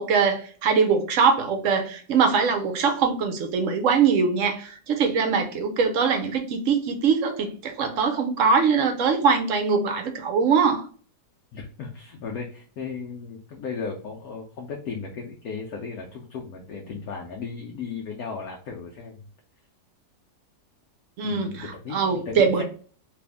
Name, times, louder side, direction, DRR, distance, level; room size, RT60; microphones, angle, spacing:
voice 1, 0.0-10.8 21.2-21.7 21.9-22.6, right 5 dB, 60° right, 6 dB, 0.8 m, -22 dB
voice 2, 11.5-19.2 21.2-22.6, left 5 dB, 65° left, 0 dB, 1.1 m, -36 dB
3.4 x 2.5 x 3.4 m, 0.43 s
omnidirectional pair, 1.8 m